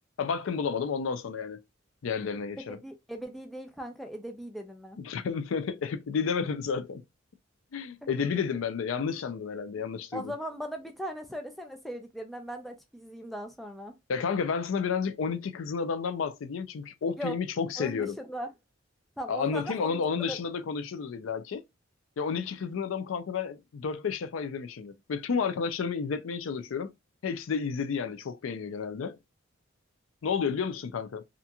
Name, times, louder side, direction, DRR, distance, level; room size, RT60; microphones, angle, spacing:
voice 1, 0.2-1.6 2.0-2.8 5.0-7.0 7.7-10.3 14.1-18.1 19.3-21.6 22.2-26.9 27.2-29.2 30.2-31.2, left 6 dB, 80° left, 0.4 m, -31 dB
voice 2, 2.7-5.0 8.0-8.5 10.1-13.9 17.2-17.4 17.8-18.5 19.2-20.4, equal, ahead, 0.4 m, -39 dB
2.8 x 2.5 x 2.2 m
head